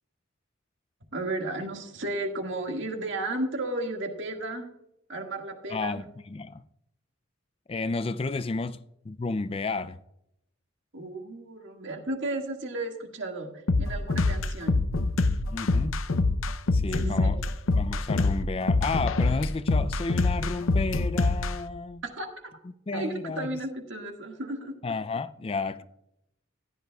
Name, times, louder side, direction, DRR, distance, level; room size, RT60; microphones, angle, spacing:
voice 1, 1.1-4.7 5.1-6.0 10.9-13.5 13.8-14.8 16.9-17.4 22.0-22.5 22.9-24.7, right 2 dB, 65° right, 1.8 m, -33 dB
voice 2, 5.7-6.6 7.7-10.0 15.5-15.9 16.7-17.4 17.7-22.0 22.9-23.5 24.8-25.8, left 3 dB, 30° left, 0.3 m, -32 dB
sound 1, 13.7-21.5, left 3 dB, 85° left, 0.7 m, -25 dB
15.0 x 10.5 x 2.3 m
head